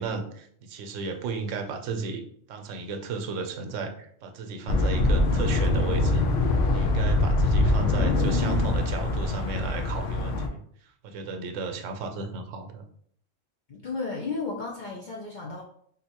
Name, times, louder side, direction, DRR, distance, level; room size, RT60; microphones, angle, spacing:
voice 1, 0.0-6.3 6.7-10.6 11.0-12.8, right 4 dB, 80° right, 5 dB, 0.9 m, -34 dB
sound 1, 4.7-10.5, left 2 dB, 80° left, 0.9 m, -23 dB
voice 2, 13.7-15.6, left 4 dB, 60° left, -2 dB, 0.5 m, -33 dB
3.7 x 2.7 x 2.8 m, 0.63 s
omnidirectional pair, 1.3 m